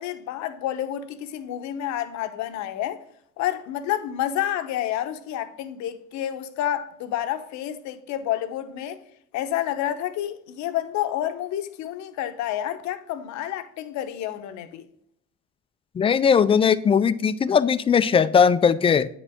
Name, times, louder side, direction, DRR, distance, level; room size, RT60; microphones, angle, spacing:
voice 1, 0.0-3.0 3.4-9.0 9.3-14.9, left 11 dB, 60° left, 0.8 m, -29 dB
voice 2, 16.0-19.1, left 6 dB, 20° left, 0.3 m, -19 dB
8.8 x 5.0 x 3.6 m
supercardioid pair, 100°, 32 cm